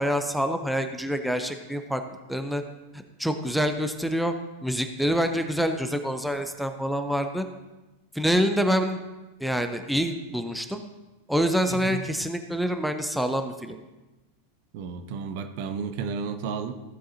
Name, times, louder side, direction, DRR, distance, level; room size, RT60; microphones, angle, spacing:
voice 1, 0.0-2.0 2.3-2.6 2.9-4.3 4.6-7.5 8.1-9.0 9.4-10.8 11.3-13.8, equal, ahead, 6 dB, 0.6 m, -26 dB
voice 2, 11.7-12.0 14.7-16.7, right 6 dB, 45° right, 8 dB, 0.7 m, -32 dB
15.5 x 7.5 x 2.7 m, 1.1 s
figure-of-eight pair, 90°, 0 cm